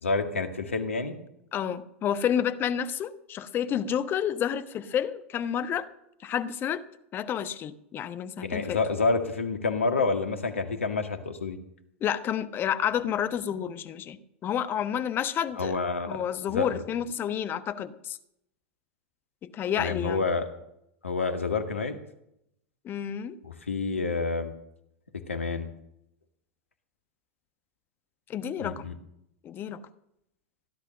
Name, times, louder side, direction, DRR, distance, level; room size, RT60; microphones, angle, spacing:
voice 1, 0.0-1.2 8.4-11.6 15.6-16.2 16.5-16.8 19.8-20.5 21.0-22.0 23.4-24.5 25.3-25.7 28.6-28.9, left 4 dB, 80° left, 7 dB, 1.9 m, -28 dB
voice 2, 1.5-5.9 6.2-6.8 7.1-8.8 12.0-15.8 16.1-18.2 19.5-20.2 22.8-23.4 28.3-28.9 29.4-29.8, left 9 dB, 30° left, 12 dB, 1.1 m, -30 dB
16.5 x 11.0 x 6.4 m, 0.79 s
figure-of-eight pair, 95°, 7 cm